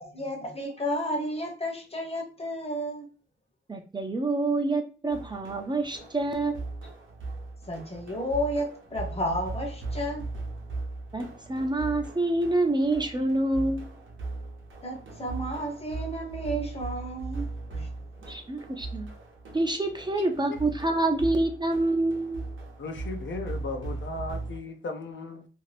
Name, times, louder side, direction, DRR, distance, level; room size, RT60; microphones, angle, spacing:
voice 1, 0.0-3.1 7.7-10.3 14.8-17.9, equal, 30° left, 0.7 m, -32 dB
voice 2, 3.7-6.6 11.1-13.8 18.3-19.1 19.5-22.4, right 2 dB, 25° right, 0.4 m, -27 dB
sound 1, 5.1-24.6, right 3 dB, 85° right, 0.7 m, -38 dB
voice 3, 20.2-20.6 22.8-25.5, left 3 dB, 75° left, 0.5 m, -36 dB
2.5 x 2.5 x 3.2 m
wide cardioid pair, 135°, 20 cm